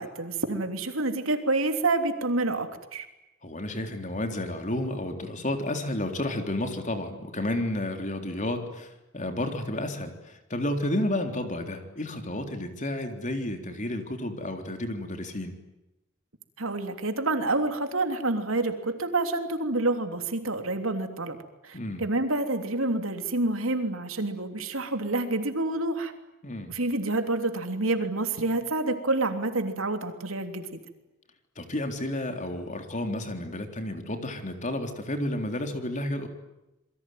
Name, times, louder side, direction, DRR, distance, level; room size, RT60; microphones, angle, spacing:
voice 1, 0.0-3.1 16.6-21.4 21.6-26.1 26.7-30.7, right 2 dB, 70° right, 6 dB, 3.3 m, -28 dB
voice 2, 3.4-15.6 21.7-22.0 26.4-26.7 31.6-36.3, left 1 dB, 35° left, 5 dB, 3.8 m, -31 dB
27.5 x 23.0 x 9.4 m, 0.96 s
head